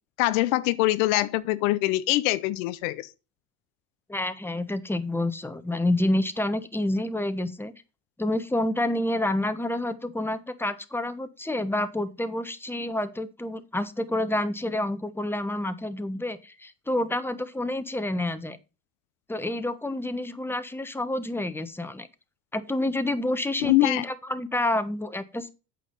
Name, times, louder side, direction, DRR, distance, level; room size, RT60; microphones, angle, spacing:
voice 1, 0.2-3.1 23.6-24.0, left 17 dB, 75° left, 0.7 m, -23 dB
voice 2, 4.1-7.7 8.2-18.6 19.3-22.1 22.5-25.5, left 1 dB, 5° left, 1.1 m, -28 dB
8.5 x 5.1 x 5.3 m
hypercardioid pair, 60°, 40 cm